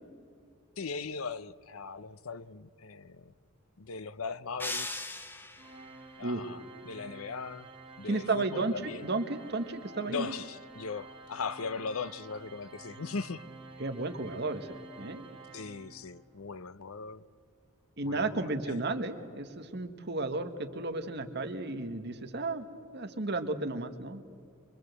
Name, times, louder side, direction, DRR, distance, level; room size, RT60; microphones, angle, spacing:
voice 1, 0.8-3.3 3.8-5.1 6.2-7.7 8.0-9.1 10.1-13.4 15.5-17.2 18.0-18.8, left 5 dB, 90° left, 0.7 m, -39 dB
sound 1, 4.6-5.9, left 2 dB, 10° left, 1.0 m, -38 dB
Organ, 5.6-16.3, right 3 dB, 25° right, 2.0 m, -50 dB
voice 2, 8.1-10.3 13.8-15.2 18.0-22.6 22.9-24.2, right 2 dB, 50° right, 1.4 m, -33 dB
24.0 x 23.0 x 8.0 m
head